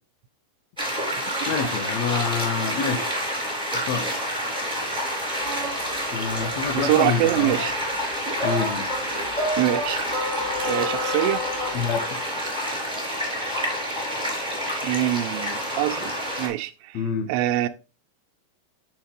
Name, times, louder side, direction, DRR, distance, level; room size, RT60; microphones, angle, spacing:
sound 1, 0.8-16.5, equal, ahead, 2.9 m, -28 dB
voice 1, 1.0-3.1 3.7-4.1 6.1-7.6 8.4-8.9 11.7-12.2 16.9-17.3, left 6 dB, 70° left, 1.6 m, -27 dB
sound 2, 5.4-11.8, left 1 dB, 25° left, 2.0 m, -31 dB
voice 2, 6.7-7.7 9.6-10.0 10.6-11.5 14.8-16.1 16.4-17.7, right 15 dB, 85° right, 2.3 m, -24 dB
7.9 x 6.0 x 3.5 m
omnidirectional pair, 4.1 m